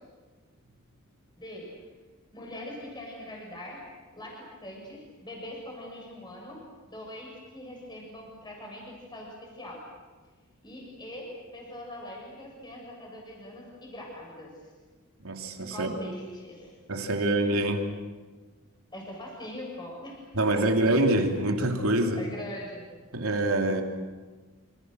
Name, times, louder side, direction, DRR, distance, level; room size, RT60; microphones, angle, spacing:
voice 1, 1.4-1.7 2.3-3.8 4.1-6.6 6.9-9.8 10.6-14.5 15.7-16.8 18.9-20.6 22.1-22.9, left 1 dB, 20° left, -1 dB, 6.9 m, -42 dB
voice 2, 15.2-15.9 16.9-17.9 20.3-22.3 23.1-23.8, right 1 dB, 80° right, 3 dB, 3.1 m, -25 dB
27.5 x 26.5 x 6.6 m, 1.4 s
head